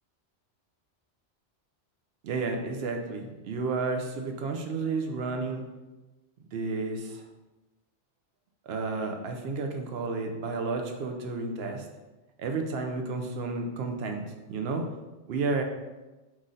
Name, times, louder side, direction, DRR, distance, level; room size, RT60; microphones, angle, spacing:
voice 1, 2.2-5.6 6.5-7.2 8.7-11.8 12.4-14.2 14.5-14.8 15.3-15.6, right 3 dB, 65° right, 4 dB, 0.8 m, -31 dB
4.0 x 3.1 x 3.7 m, 1.1 s
omnidirectional pair, 1.2 m